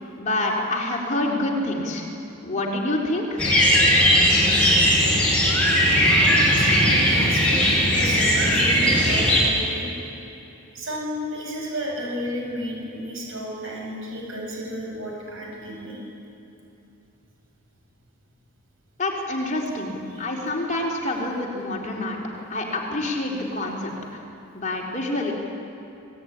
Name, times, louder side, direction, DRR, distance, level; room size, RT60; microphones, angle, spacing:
voice 1, 0.2-2.1 2.4-3.4 19.0-22.2 22.5-23.9 24.5-25.3, left 1 dB, 35° left, -2 dB, 4.3 m, -27 dB
sound 1, 3.4-9.4, equal, 5° left, 7.7 m, -18 dB
voice 2, 6.1-9.9 10.7-16.0 20.1-20.2, equal, 60° right, -2 dB, 8.0 m, -32 dB
25.5 x 19.5 x 9.9 m, 2.9 s
head